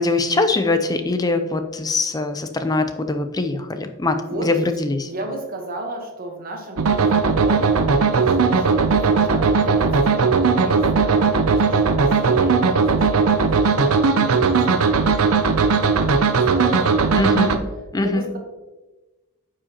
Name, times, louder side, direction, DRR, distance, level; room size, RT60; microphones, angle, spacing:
voice 1, 0.0-5.1 17.2-17.5 17.9-18.2, left 3 dB, 15° left, 8 dB, 0.4 m, -22 dB
voice 2, 4.2-4.5 5.0-7.8 8.1-10.2 10.6-17.5 18.0-18.4, right 2 dB, 40° right, 3 dB, 1.1 m, -34 dB
sound 1, 6.8-17.6, right 4 dB, 75° right, 0.5 m, -18 dB
8.7 x 4.9 x 2.9 m, 1.1 s
head